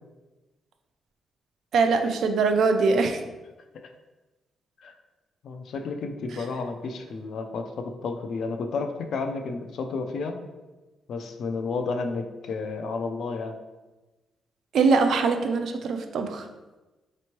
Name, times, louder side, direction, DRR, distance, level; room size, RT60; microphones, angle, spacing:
voice 1, 1.7-3.2 14.7-16.5, right 4 dB, 65° right, 6 dB, 0.4 m, -22 dB
voice 2, 5.4-10.4 11.1-13.6, left 4 dB, 65° left, 5 dB, 0.4 m, -31 dB
4.2 x 3.0 x 2.9 m, 1.1 s
cardioid pair, 115°, 0 cm